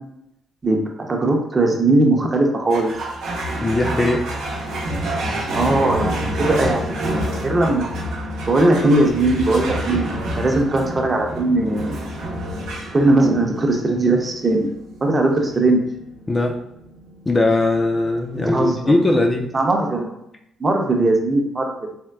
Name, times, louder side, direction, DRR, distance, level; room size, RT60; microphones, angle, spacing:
voice 1, 1.1-2.9 5.2-7.0 7.4-7.8 8.5-12.1 12.9-14.7 15.0-15.8 18.5-19.0 19.5-20.1 20.6-21.7, right 2 dB, 30° right, 2 dB, 0.6 m, -19 dB
sound 1, 2.7-19.4, right 1 dB, 90° right, 0.7 m, -28 dB
voice 2, 3.6-4.3 9.9-10.0 16.3-16.6 17.3-19.5, left 2 dB, 25° left, 2 dB, 0.4 m, -19 dB
3.5 x 2.2 x 2.2 m, 0.78 s
cardioid pair, 90°, 0 cm